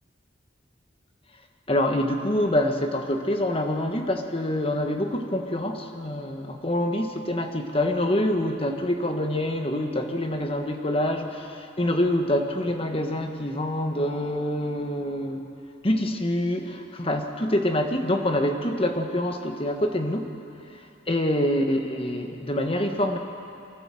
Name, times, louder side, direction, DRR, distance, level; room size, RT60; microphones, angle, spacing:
voice 1, 1.7-15.5 15.8-20.3 20.7-20.8 21.1-23.2, left 1 dB, 30° left, 4 dB, 1.4 m, -26 dB
23.5 x 15.0 x 7.7 m, 2.6 s
head